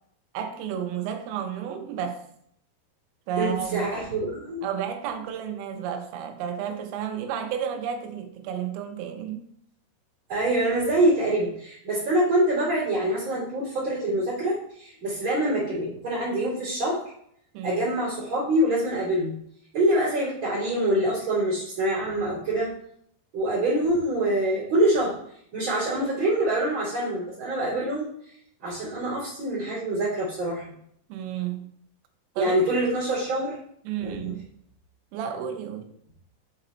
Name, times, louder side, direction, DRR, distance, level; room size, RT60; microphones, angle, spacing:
voice 1, 0.3-2.2 3.3-3.9 4.6-9.5 17.5-17.8 31.1-31.7 32.4-32.7 33.9-34.5 35.1-35.9, right 8 dB, 85° right, 3.4 m, -32 dB
voice 2, 3.4-4.6 10.3-17.0 17.6-19.3 19.7-22.7 23.3-25.1 25.5-28.1 28.6-30.6 32.3-33.6 34.0-34.2, right 1 dB, 40° right, 3.2 m, -25 dB
7.7 x 4.1 x 4.2 m
omnidirectional pair, 5.8 m